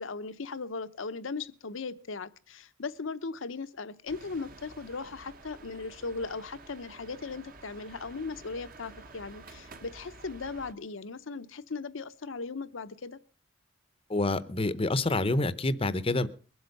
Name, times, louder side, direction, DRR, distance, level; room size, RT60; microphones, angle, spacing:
voice 1, 0.0-13.2, left 4 dB, 75° left, 14 dB, 0.8 m, -38 dB
sound 1, 4.1-10.7, right 3 dB, 45° right, 1.1 m, -51 dB
voice 2, 14.1-16.3, left 2 dB, 30° left, 15 dB, 0.7 m, -27 dB
22.5 x 7.9 x 5.3 m, 0.39 s
head